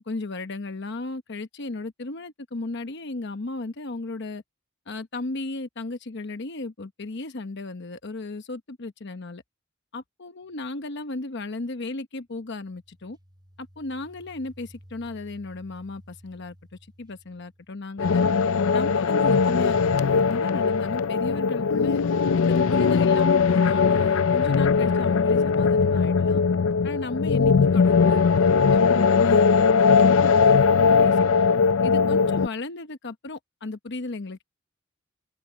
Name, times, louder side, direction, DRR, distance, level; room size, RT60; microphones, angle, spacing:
voice 1, 0.1-4.4 4.9-9.4 9.9-13.2 13.6-16.6 17.0-18.3 18.7-22.0 22.4-26.4 26.8-31.3 31.8-34.4, left 2 dB, 60° left, 0.9 m, -35 dB
sound 1, 12.4-18.1, equal, 20° right, 4.7 m, -53 dB
sound 2, 18.0-32.5, left 5 dB, 85° left, 0.5 m, -20 dB
head